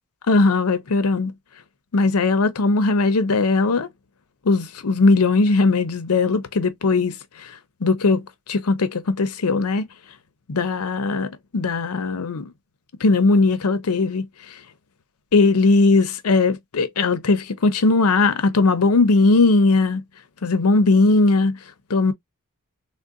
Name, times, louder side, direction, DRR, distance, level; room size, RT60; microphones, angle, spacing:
voice 1, 0.3-1.3 1.9-3.9 4.4-7.5 7.8-8.2 8.5-9.9 10.5-12.5 13.0-14.3 15.3-20.0 20.4-21.6 21.9-22.1, left 3 dB, 90° left, 0.7 m, -19 dB
3.7 x 2.2 x 2.4 m
head